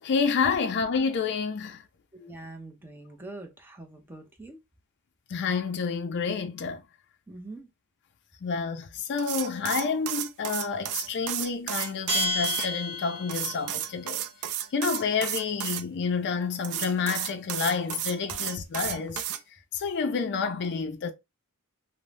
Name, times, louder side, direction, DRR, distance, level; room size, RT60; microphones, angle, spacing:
voice 1, 0.0-1.8 5.3-6.8 8.4-14.3 14.7-19.2 19.7-21.1, left 5 dB, 50° left, 0.4 m, -29 dB
voice 2, 2.1-4.6 7.3-7.7, right 2 dB, 10° right, 0.5 m, -44 dB
sound 1, 9.2-12.7 13.3-15.8 16.6-19.4, right 11 dB, 75° right, 0.4 m, -32 dB
Bell, 12.1-13.7, left 2 dB, 25° right, 1.0 m, -30 dB
2.6 x 2.0 x 3.1 m
head